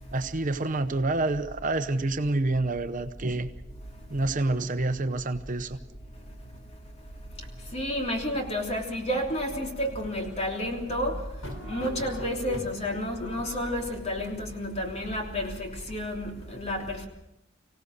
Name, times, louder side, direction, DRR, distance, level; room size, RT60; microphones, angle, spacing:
voice 1, 0.1-3.5 4.1-5.8, right 2 dB, 40° right, 8 dB, 0.8 m, -28 dB
voice 2, 7.7-11.2 11.6-17.1, left 1 dB, 35° left, 2 dB, 3.2 m, -31 dB
sound 1, 9.5-14.3, right 1 dB, 80° left, 3.8 m, -42 dB
25.0 x 17.0 x 6.6 m, 0.88 s
head